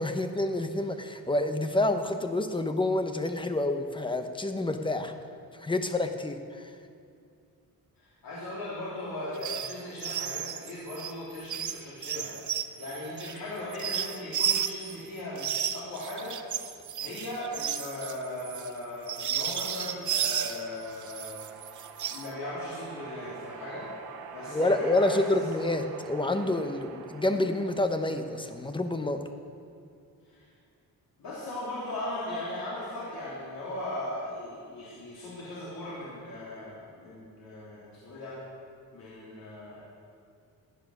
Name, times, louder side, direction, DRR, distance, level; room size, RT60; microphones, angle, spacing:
voice 1, 0.0-5.1 5.5-6.7 24.5-29.3, left 2 dB, 15° left, 7 dB, 0.8 m, -28 dB
voice 2, 8.0-16.4 17.0-23.9 24.3-25.2 30.3-30.4 31.2-38.4 38.9-39.8, left 1 dB, 80° left, -8 dB, 3.3 m, -38 dB
sound 1, 9.4-9.7 10.0-15.0 15.4-20.6 21.0-22.3, right 9 dB, 55° right, 0.7 m, -33 dB
sound 2, 19.8-29.4, right 6 dB, 85° right, 1.1 m, -47 dB
15.5 x 9.2 x 6.5 m, 2.3 s
wide cardioid pair, 155°, 36 cm